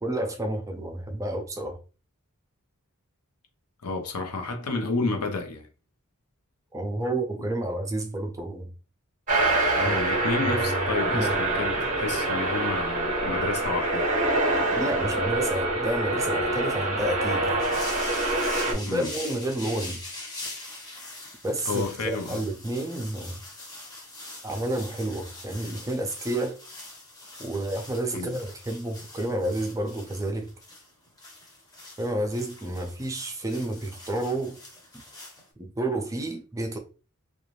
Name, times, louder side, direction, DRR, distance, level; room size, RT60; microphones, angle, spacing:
voice 1, 0.0-1.8 6.7-8.7 9.8-10.0 10.4-11.4 14.7-17.6 18.7-20.0 21.4-23.3 24.4-26.6 27.4-30.5 32.0-34.6 35.6-36.8, right 1 dB, 15° right, 0.4 m, -30 dB
voice 2, 3.8-5.7 7.4-7.5 9.7-14.1 18.8-19.1 21.7-22.4 28.1-28.4, left 3 dB, 90° left, 0.7 m, -31 dB
sound 1, 9.3-18.7, right 2 dB, 35° right, 0.8 m, -25 dB
sound 2, 17.6-35.4, left 2 dB, 15° left, 0.8 m, -42 dB
2.5 x 2.3 x 3.0 m
head